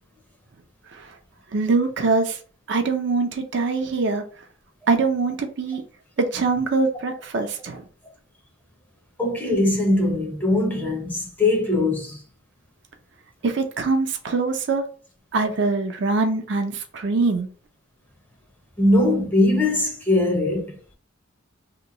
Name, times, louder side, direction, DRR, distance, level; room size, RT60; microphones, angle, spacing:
voice 1, 1.5-2.4 2.7-4.2 4.9-5.8 6.2-7.8 13.4-14.8 15.3-17.5, right 3 dB, 60° right, 0.5 m, -23 dB
voice 2, 9.2-12.2 18.8-20.8, left 1 dB, 10° left, 0.7 m, -21 dB
2.9 x 2.2 x 3.7 m
head